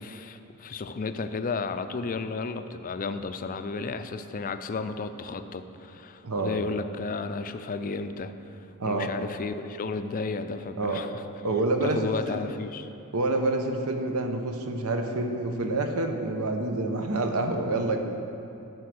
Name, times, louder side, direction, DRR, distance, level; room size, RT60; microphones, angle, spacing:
voice 1, 0.0-11.1 11.8-12.9, left 4 dB, 40° left, 9 dB, 0.4 m, -33 dB
voice 2, 6.2-6.6 8.8-9.1 10.8-11.1 11.4-12.5 13.1-18.0, right 2 dB, 70° right, 4 dB, 0.9 m, -27 dB
13.0 x 4.6 x 6.2 m, 2.8 s
head